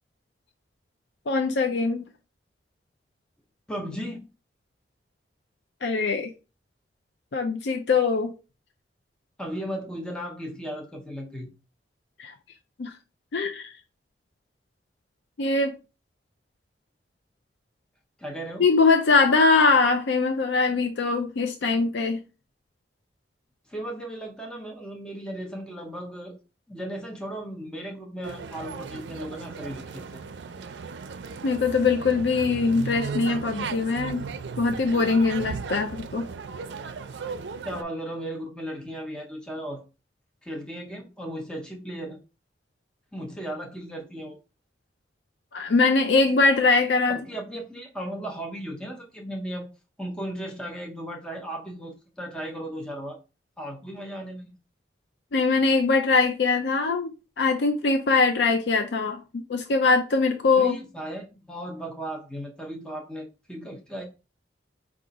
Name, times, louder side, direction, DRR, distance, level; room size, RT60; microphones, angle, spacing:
voice 1, 1.3-2.1 5.8-6.3 7.3-8.3 12.2-12.3 12.8-12.9 13.3-13.7 15.4-15.7 18.6-22.2 31.4-34.3 34.6-36.2 45.5-47.2 55.3-57.1 57.4-60.8, left 4 dB, 75° left, 0.5 m, -22 dB
voice 2, 3.7-4.3 9.4-11.5 18.2-18.7 23.7-26.4 26.7-30.2 37.6-39.8 40.4-42.2 43.1-44.4 47.1-49.7 50.0-53.2 53.6-54.5 60.6-64.0, right 1 dB, 5° left, 0.6 m, -36 dB
sound 1, 28.2-37.8, right 5 dB, 75° right, 0.4 m, -36 dB
4.8 x 2.4 x 3.9 m
head